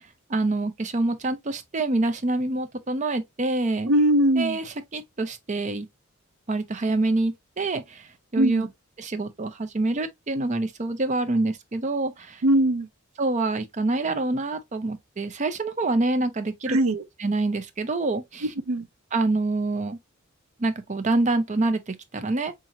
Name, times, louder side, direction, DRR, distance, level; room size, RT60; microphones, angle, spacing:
voice 1, 0.3-3.9 4.4-5.9 6.5-8.1 8.3-8.7 9.0-12.4 13.2-16.8 17.2-18.5 19.1-20.0 20.6-22.5, right 2 dB, 35° right, 0.6 m, -26 dB
voice 2, 3.9-4.6 8.4-8.7 12.4-12.9 16.7-17.0 18.4-18.8, right 1 dB, 80° right, 0.5 m, -21 dB
3.7 x 3.0 x 2.7 m
head